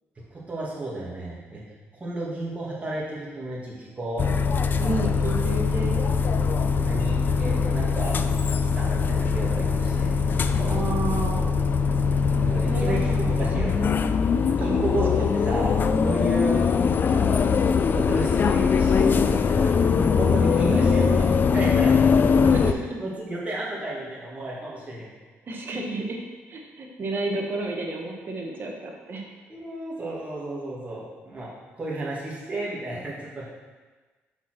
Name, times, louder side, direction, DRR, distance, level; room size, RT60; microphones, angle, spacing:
voice 1, 0.3-1.6 2.0-4.3 6.8-8.2 8.7-10.7 12.4-13.9 14.6-15.7 16.0-16.7 17.0-19.7 20.1-21.3 21.5-22.0 22.6-25.1 29.5-31.5 31.8-33.5, right 2 dB, 25° right, -6 dB, 2.3 m, -32 dB
sound 1, 4.2-22.7, left 5 dB, 40° left, 0.4 m, -22 dB
voice 2, 4.8-6.0 10.7-11.5 12.7-13.4 13.7-14.1 14.3-14.8 15.2-15.3 20.6-20.9 22.4-23.0 25.4-26.2 26.5-29.2, right 2 dB, 45° right, 1 dB, 1.3 m, -31 dB
5.8 x 4.3 x 6.0 m, 1.3 s
cardioid pair, 90°, 5 cm